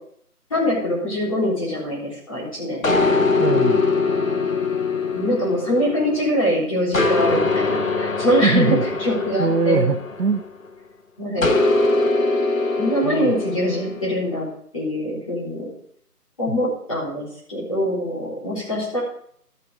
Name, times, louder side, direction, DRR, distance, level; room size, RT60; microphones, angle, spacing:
voice 1, 0.5-3.2 5.1-9.9 11.2-11.5 12.8-14.5 14.7-15.7 16.4-19.0, equal, 20° left, -8 dB, 3.7 m, -23 dB
sound 1, 2.8-6.4 6.9-10.7 11.4-14.1, left 3 dB, 55° left, 1.3 m, -22 dB
voice 2, 3.4-3.9 8.4-8.8 9.4-10.4 11.4-11.5 13.0-13.3 16.5-16.6, right 4 dB, 80° right, 11 dB, 0.9 m, -22 dB
13.0 x 6.9 x 4.9 m, 0.63 s
figure-of-eight pair, 170°, 47 cm